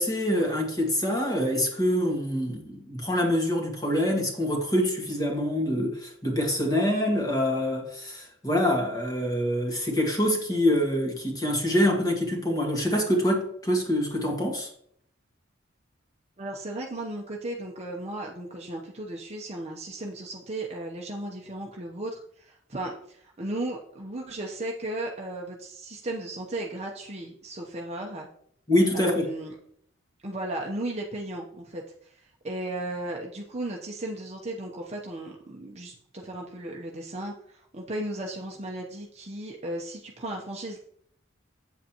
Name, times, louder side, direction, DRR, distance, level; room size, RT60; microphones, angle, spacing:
voice 1, 0.0-14.7 28.7-29.3, equal, 20° left, 0 dB, 2.0 m, -25 dB
voice 2, 16.4-28.3 28.9-29.5 30.2-40.8, right 1 dB, 35° right, -1 dB, 0.9 m, -35 dB
8.3 x 7.9 x 3.0 m, 0.67 s
head